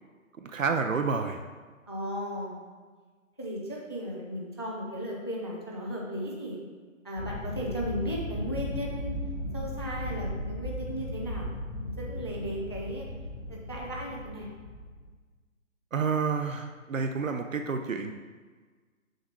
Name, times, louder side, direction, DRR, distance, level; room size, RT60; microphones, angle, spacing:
voice 1, 0.4-1.4 15.9-18.1, right 5 dB, 70° right, 6 dB, 0.6 m, -29 dB
voice 2, 1.9-2.6 3.4-6.6 7.0-9.1 9.5-11.5 11.8-13.0 13.5-14.5, equal, 20° left, -2 dB, 0.4 m, -35 dB
sound 1, 7.2-15.0, left 1 dB, 55° left, 1.2 m, -36 dB
6.5 x 5.7 x 3.1 m, 1.4 s
figure-of-eight pair, 135°, 41 cm